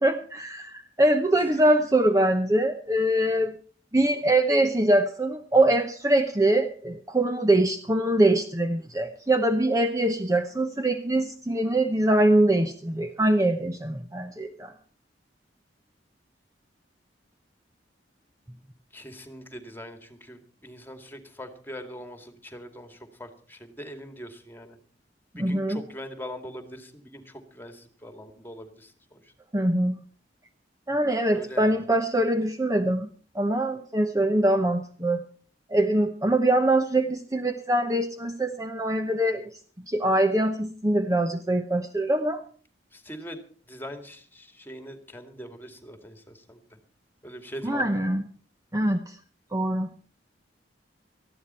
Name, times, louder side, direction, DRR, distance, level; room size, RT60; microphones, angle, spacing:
voice 1, 0.0-3.5 3.9-14.7 25.3-25.8 29.5-30.0 30.9-35.2 35.7-39.5 39.9-42.4 47.6-48.3 48.7-49.2 49.5-49.9, right 1 dB, 20° right, 7 dB, 0.9 m, -23 dB
voice 2, 1.3-1.7 18.9-24.8 25.4-29.3 31.3-31.8 42.9-43.4 43.7-46.8 47.2-47.8, equal, 10° left, 8 dB, 2.2 m, -42 dB
19.0 x 14.0 x 4.4 m, 0.43 s
head